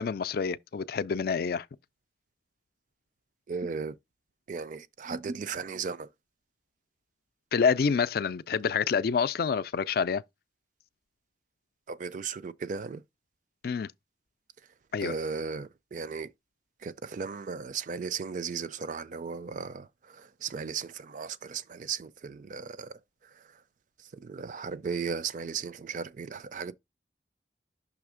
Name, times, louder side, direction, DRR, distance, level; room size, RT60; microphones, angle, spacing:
voice 1, 0.0-1.7 7.5-10.2 13.6-13.9 14.9-15.1, left 6 dB, 55° left, 0.4 m, -27 dB
voice 2, 3.5-4.0 4.5-6.1 11.9-13.0 15.0-16.3 16.8-23.6 24.0-26.7, right 5 dB, 45° right, 0.4 m, -36 dB
6.2 x 3.2 x 4.9 m
head